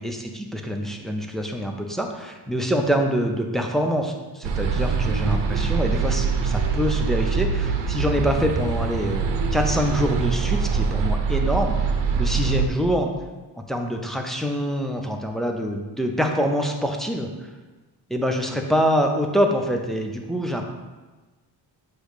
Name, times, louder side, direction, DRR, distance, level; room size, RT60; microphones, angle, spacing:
voice 1, 0.0-13.1 13.7-17.3 18.1-20.7, equal, ahead, 2 dB, 0.4 m, -25 dB
sound 1, 4.4-12.7, right 5 dB, 75° right, 0.8 m, -23 dB
8.2 x 3.1 x 4.9 m, 1.2 s
wide cardioid pair, 170°, 43 cm